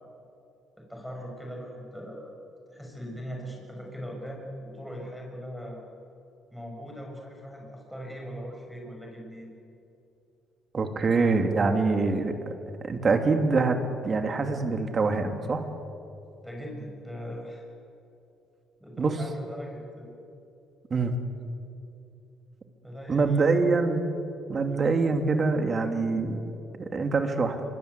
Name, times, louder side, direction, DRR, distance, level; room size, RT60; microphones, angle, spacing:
voice 1, 0.8-2.3 2.7-5.8 6.5-9.5 16.4-17.6 18.8-20.2 22.8-23.4 24.7-24.8, equal, ahead, -1 dB, 6.8 m, -40 dB
voice 2, 10.7-12.5 12.8-15.7 19.0-19.2 20.9-21.1 23.1-24.1 24.5-26.4 26.7-27.6, right 4 dB, 40° right, 6 dB, 3.0 m, -25 dB
25.0 x 24.0 x 8.4 m, 2.7 s
supercardioid pair, 75°, 0 cm